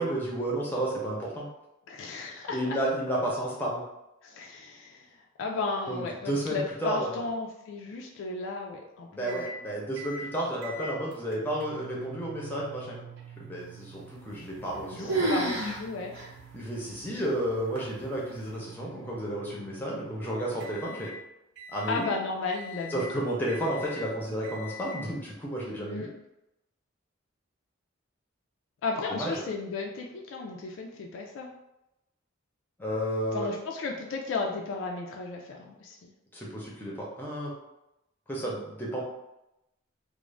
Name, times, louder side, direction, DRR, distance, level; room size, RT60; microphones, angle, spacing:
voice 1, 0.0-1.5 2.5-3.8 5.9-7.2 9.1-13.1 13.4-15.3 16.5-21.1 21.7-22.1 22.9-26.1 29.1-29.4 32.8-33.5 36.3-37.5 38.3-39.0, right 1 dB, 10° left, -4 dB, 0.6 m, -32 dB
voice 2, 1.9-2.6 4.2-5.1 5.4-9.5 14.9-16.1 21.9-23.0 25.9-26.1 28.8-31.5 33.3-36.1, left 3 dB, 65° left, 0 dB, 0.3 m, -34 dB
sound 1, 9.3-9.5 10.0-10.2 10.6-21.2 21.6-22.1 22.5-23.1 23.5-24.0 24.4-25.0, right 1 dB, 55° right, 0.4 m, -46 dB
sound 2, 14.3-14.8 15.1-15.8 16.1-16.3 16.9-17.0 17.8-18.1, right 1 dB, 85° right, 0.8 m, -29 dB
2.4 x 2.0 x 3.1 m, 0.90 s
head